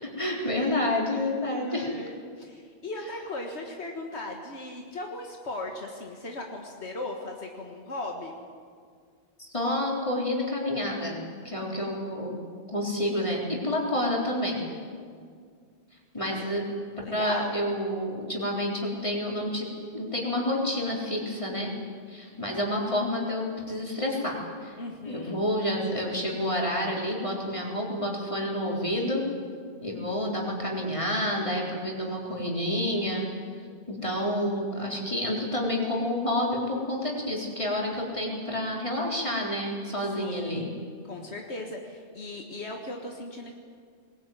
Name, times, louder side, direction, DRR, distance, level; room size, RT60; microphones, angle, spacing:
voice 1, 0.0-1.9 9.4-11.2 11.4-12.4 12.7-14.7 16.1-16.6 17.1-19.7 19.9-21.7 22.1-24.8 25.1-29.2 29.8-33.3 33.9-40.7, left 1 dB, 30° left, -2 dB, 3.9 m, -29 dB
voice 2, 1.5-8.3 16.1-16.5 17.0-17.5 24.8-25.4 40.0-40.7 41.0-43.5, left 2 dB, 80° left, 1 dB, 2.0 m, -38 dB
20.5 x 20.0 x 9.3 m, 2.1 s
omnidirectional pair, 1.1 m